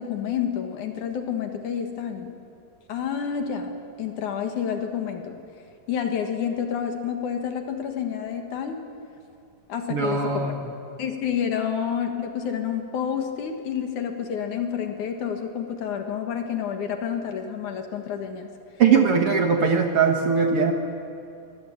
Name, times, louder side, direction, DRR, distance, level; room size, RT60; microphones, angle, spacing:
voice 1, 0.0-2.3 2.9-5.4 5.9-8.8 9.7-10.6 11.0-18.5, left 8 dB, 60° left, 5 dB, 2.7 m, -29 dB
voice 2, 9.9-10.6 18.8-20.7, right 6 dB, 60° right, 3 dB, 1.5 m, -20 dB
24.5 x 20.0 x 8.7 m, 2.6 s
omnidirectional pair, 4.3 m